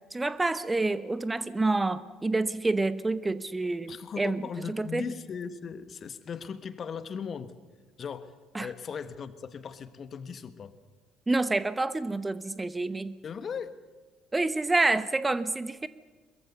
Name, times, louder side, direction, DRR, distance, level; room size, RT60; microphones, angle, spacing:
voice 1, 0.1-4.4 4.7-5.1 8.5-8.7 11.3-13.1 14.3-15.9, right 2 dB, 15° right, 15 dB, 0.9 m, -28 dB
voice 2, 3.9-7.5 8.0-10.7 13.2-13.7, left 6 dB, 45° left, 13 dB, 1.4 m, -38 dB
22.0 x 22.0 x 6.9 m, 1.3 s
figure-of-eight pair, 55°, 0 cm